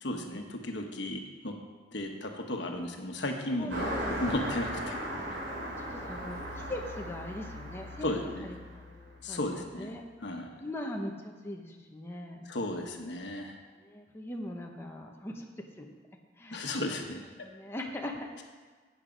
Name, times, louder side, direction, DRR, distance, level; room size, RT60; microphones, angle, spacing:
voice 1, 0.0-1.6 1.9-5.0 8.0-8.5 9.2-9.9 10.2-10.6 12.4-13.6 16.5-17.5, left 1 dB, 70° left, 3 dB, 1.4 m, -35 dB
voice 2, 3.5-4.2 5.8-10.0 10.6-12.4 13.7-15.9 16.4-16.7 17.4-18.4, left 1 dB, 15° left, 0 dB, 1.0 m, -41 dB
Car passing by, 3.7-9.5, equal, 70° right, 3.3 m, -37 dB
12.0 x 8.4 x 5.3 m, 1.4 s
head